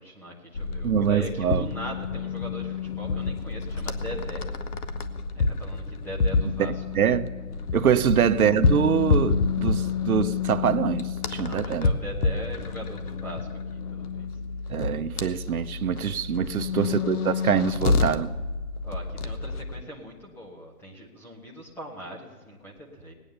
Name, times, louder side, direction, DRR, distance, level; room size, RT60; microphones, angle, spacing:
voice 1, 0.0-4.4 5.3-6.8 7.9-8.1 11.3-14.3 16.4-16.9 18.8-23.1, equal, 5° left, 0.9 m, -40 dB
sound 1, 0.5-19.8, left 4 dB, 80° left, 1.2 m, -28 dB
voice 2, 0.8-1.7 7.0-7.3 7.7-11.9 14.7-18.3, right 8 dB, 70° right, 0.8 m, -24 dB
18.5 x 9.0 x 6.7 m
hypercardioid pair, 155°, 44 cm